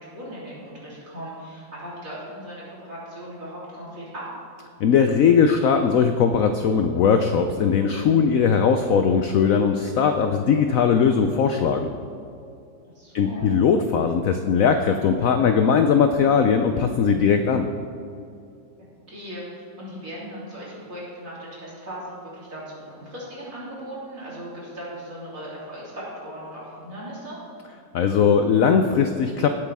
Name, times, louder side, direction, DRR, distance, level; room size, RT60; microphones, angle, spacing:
voice 1, 0.0-4.3 12.9-13.5 19.0-27.4, equal, 45° right, -8 dB, 3.9 m, -38 dB
voice 2, 4.8-11.9 13.1-17.7 27.9-29.5, left 6 dB, 70° left, 7 dB, 0.8 m, -19 dB
18.0 x 8.3 x 3.5 m, 2.5 s
omnidirectional pair, 2.0 m